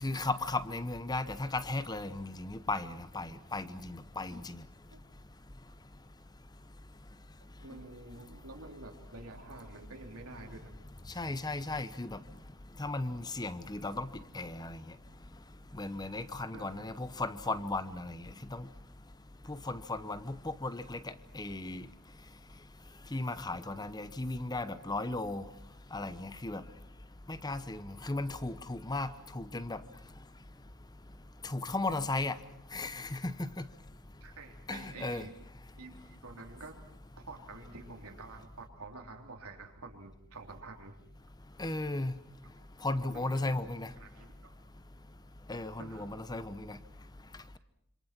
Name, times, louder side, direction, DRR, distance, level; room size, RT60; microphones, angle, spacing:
voice 1, 0.0-4.6 11.2-12.2 12.8-14.8 15.8-18.7 19.5-21.0 21.3-21.8 23.1-25.4 25.9-26.6 27.3-29.8 31.4-32.4 32.7-33.7 34.7-35.2 41.6-42.1 42.8-43.9 45.5-46.8, left 2 dB, 20° left, 14 dB, 0.9 m, -36 dB
voice 2, 7.6-10.7 16.5-16.9 34.2-35.4 35.8-36.7 37.2-40.9 41.6-41.8 42.4-42.6 43.1-43.5 44.0-44.5 45.8-46.1, right 3 dB, 75° right, 2 dB, 3.6 m, -49 dB
27.0 x 26.0 x 6.1 m, 0.77 s
head